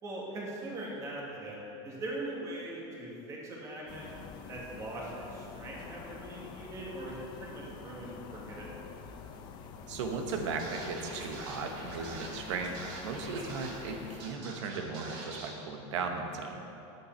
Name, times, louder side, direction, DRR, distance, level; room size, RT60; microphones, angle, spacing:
voice 1, 0.0-4.1 4.5-8.7, right 1 dB, 20° right, -4 dB, 1.7 m, -41 dB
sound 1, 3.9-14.3, left 5 dB, 30° left, 0.5 m, -47 dB
voice 2, 9.9-12.7 13.0-16.7, right 4 dB, 80° right, 4 dB, 1.1 m, -36 dB
Scratching (performance technique), 10.3-10.4 10.6-13.9 14.2-15.5, right 3 dB, 45° right, 2.0 m, -44 dB
10.0 x 7.9 x 4.5 m, 2.9 s
supercardioid pair, 170°, 15 cm